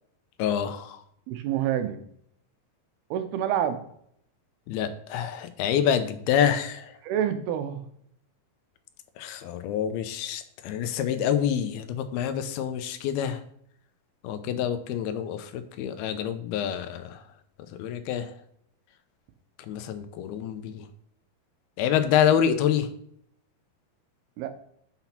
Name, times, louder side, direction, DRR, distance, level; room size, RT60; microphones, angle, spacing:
voice 1, 0.4-1.0 4.7-6.9 9.2-13.4 14.2-17.1 17.8-18.3 19.7-20.8 21.8-22.9, left 9 dB, 90° left, 9 dB, 2.7 m, -27 dB
voice 2, 1.3-2.0 3.1-3.8 7.0-7.8 24.4-24.5, right 10 dB, 85° right, 9 dB, 2.8 m, -27 dB
6.9 x 6.0 x 5.8 m, 0.68 s
omnidirectional pair, 4.4 m